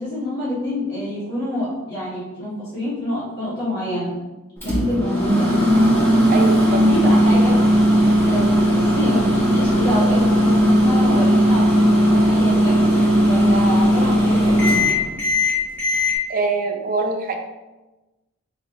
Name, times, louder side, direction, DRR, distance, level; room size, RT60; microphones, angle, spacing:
voice 1, 0.0-4.2 4.6-5.6 6.9-7.6 8.3-12.9 13.2-14.9, equal, 50° left, -11 dB, 1.5 m, -26 dB
Microwave oven, 4.6-16.1, equal, 10° left, 0.9 m, -17 dB
voice 2, 6.3-6.8 16.3-17.4, right 3 dB, 40° right, 4 dB, 0.4 m, -23 dB
4.1 x 3.2 x 2.6 m, 1.1 s
head